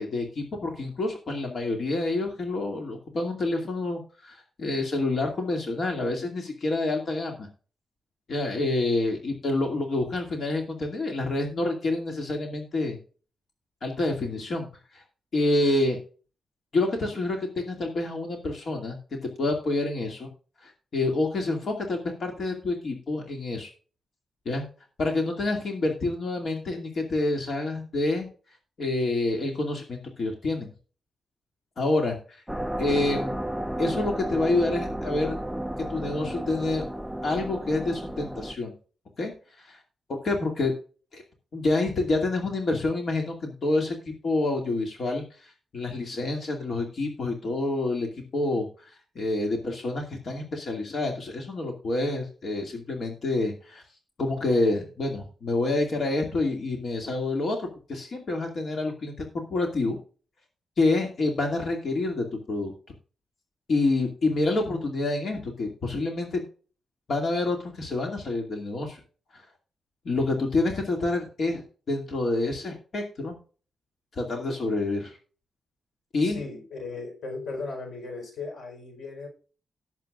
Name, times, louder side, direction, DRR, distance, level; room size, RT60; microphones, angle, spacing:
voice 1, 0.0-7.5 8.3-13.0 13.8-14.7 14.9-15.0 15.3-16.0 16.7-19.0 19.4-20.3 20.6-23.7 24.5-24.6 25.0-28.3 28.8-30.7 31.8-32.2 32.8-33.3 33.8-35.4 35.9-36.8 37.2-38.7 39.2-39.3 39.6-39.8 40.2-40.7 41.1-41.2 41.5-48.1 48.3-48.7 49.2-53.8 54.2-59.2 59.5-60.0 60.8-62.7 63.7-66.4 67.1-69.0 69.3-69.4 70.0-73.3 74.2-75.2 76.1-76.4, left 2 dB, 50° left, 2 dB, 2.4 m, -27 dB
sound 1, 32.5-38.6, right 1 dB, ahead, 0.5 m, -32 dB
voice 2, 76.2-79.3, left 3 dB, 90° left, 3 dB, 4.7 m, -37 dB
18.5 x 7.4 x 2.5 m, 0.38 s
wide cardioid pair, 150°, 0 cm